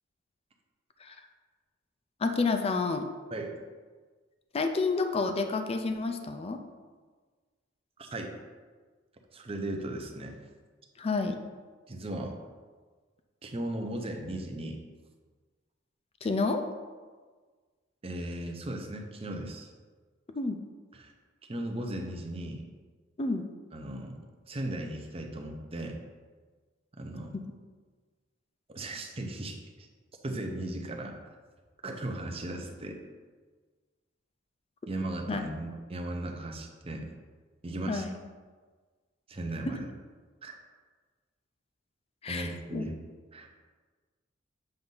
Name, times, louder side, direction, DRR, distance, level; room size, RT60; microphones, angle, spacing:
voice 1, 2.2-3.1 4.5-6.6 11.0-11.4 16.2-16.6 20.3-20.6 23.2-23.5 35.3-35.5 37.9-38.2 39.6-39.8 42.2-42.9, left 3 dB, 30° left, 7 dB, 0.4 m, -29 dB
voice 2, 8.0-8.3 9.3-10.4 11.9-12.4 13.4-14.8 18.0-19.7 21.0-21.1 21.5-22.7 23.7-24.2 24.5-26.0 27.0-27.4 28.7-29.6 30.2-31.2 31.8-33.0 34.9-37.1 37.6-38.0 39.3-39.9 40.4-40.5 42.3-43.0 43.3-43.5, right 1 dB, 30° right, 2 dB, 0.7 m, -36 dB
7.7 x 2.7 x 5.4 m, 1.4 s
head